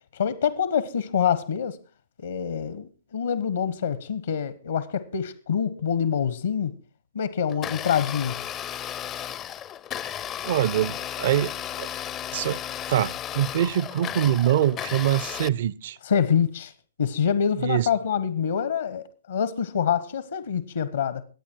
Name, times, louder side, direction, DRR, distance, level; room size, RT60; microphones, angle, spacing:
voice 1, 0.1-1.8 2.2-6.7 7.1-8.4 16.0-16.7 17.0-21.2, left 7 dB, 65° left, 1.2 m, -26 dB
Domestic sounds home sounds, 7.5-15.5, left 10 dB, 20° left, 0.6 m, -34 dB
voice 2, 10.4-11.5 11.8-11.9 12.3-12.6 12.9-16.0 17.6-17.9, right 11 dB, 45° right, 0.6 m, -24 dB
22.5 x 8.7 x 4.5 m
figure-of-eight pair, 125°, 0 cm